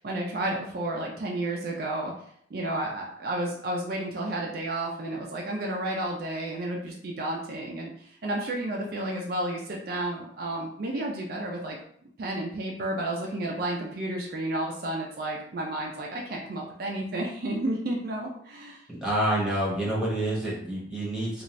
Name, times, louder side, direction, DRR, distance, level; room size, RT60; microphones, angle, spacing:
voice 1, 0.0-2.1 2.5-11.8 12.2-18.8, right 1 dB, 55° right, -1 dB, 0.4 m, -31 dB
voice 2, 18.9-21.4, right 1 dB, 5° right, -6 dB, 0.9 m, -28 dB
2.5 x 2.4 x 3.0 m, 0.66 s
head